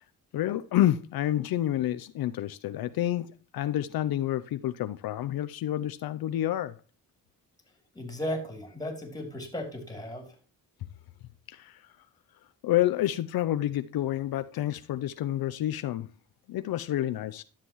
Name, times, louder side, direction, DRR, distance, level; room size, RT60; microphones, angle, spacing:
voice 1, 0.3-6.8 11.5-11.9 12.6-16.1 16.5-17.4, left 13 dB, 75° left, 0.6 m, -29 dB
voice 2, 7.9-10.3, left 1 dB, 10° left, 3.0 m, -35 dB
11.5 x 7.5 x 3.0 m
cardioid pair, 90°, 36 cm